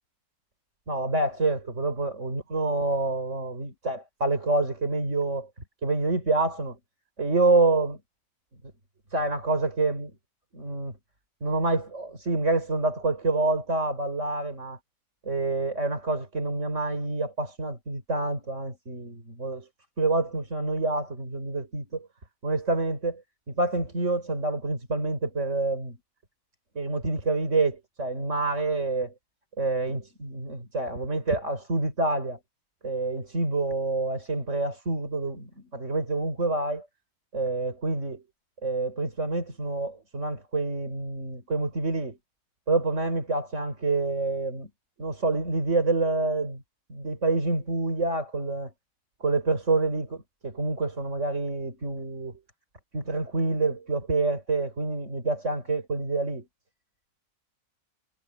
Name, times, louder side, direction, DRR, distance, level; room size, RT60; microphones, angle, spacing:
voice 1, 0.9-5.5 5.8-6.8 7.2-8.0 9.1-10.1 10.5-11.0 11.4-14.8 15.3-19.7 20.0-22.1 22.4-23.2 23.5-26.0 26.8-29.1 29.6-32.4 32.8-36.9 37.3-38.2 38.6-42.2 42.7-44.7 45.0-46.6 46.9-48.7 49.2-52.4 52.9-56.5, right 3 dB, 50° right, 5.2 m, -27 dB
omnidirectional pair, 1.6 m